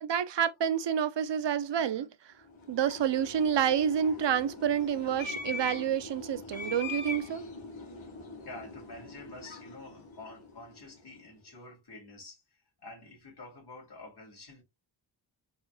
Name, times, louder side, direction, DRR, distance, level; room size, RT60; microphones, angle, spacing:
voice 1, 0.0-2.3 2.7-7.4, right 8 dB, 65° right, 0.7 m, -29 dB
sound 1, 2.5-11.0, left 3 dB, 90° left, 2.2 m, -42 dB
voice 2, 8.4-14.6, left 2 dB, 55° left, 2.7 m, -48 dB
4.7 x 4.3 x 2.3 m
wide cardioid pair, 95°, 46 cm